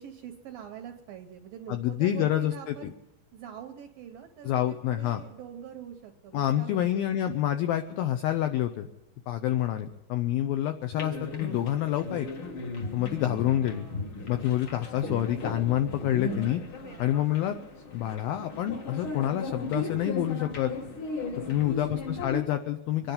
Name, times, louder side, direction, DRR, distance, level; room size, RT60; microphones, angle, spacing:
voice 1, 0.0-2.9 3.3-7.0 7.3-7.4 13.0-14.2 16.8-17.2 21.3-22.0, right 9 dB, 75° right, 4 dB, 2.1 m, -45 dB
voice 2, 1.7-2.9 4.4-5.2 6.3-8.9 9.3-12.3 12.9-13.9 14.3-16.6 17.0-17.6 17.9-20.7 21.5-23.1, left 12 dB, 85° left, 7 dB, 2.1 m, -27 dB
sound 1, 10.9-22.4, left 3 dB, 60° left, 1.3 m, -37 dB
24.5 x 10.5 x 5.4 m, 0.96 s
omnidirectional pair, 5.1 m